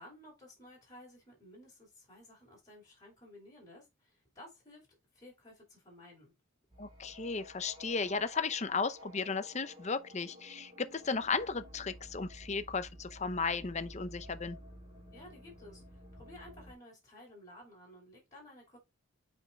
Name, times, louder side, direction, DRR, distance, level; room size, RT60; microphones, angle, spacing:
voice 1, 0.0-4.9 5.1-6.3 15.1-18.8, left 1 dB, 15° left, 4.6 m, -55 dB
sound 1, 6.7-16.7, equal, 25° right, 4.4 m, -53 dB
voice 2, 6.8-14.6, left 4 dB, 35° left, 0.7 m, -35 dB
8.6 x 5.4 x 2.3 m
head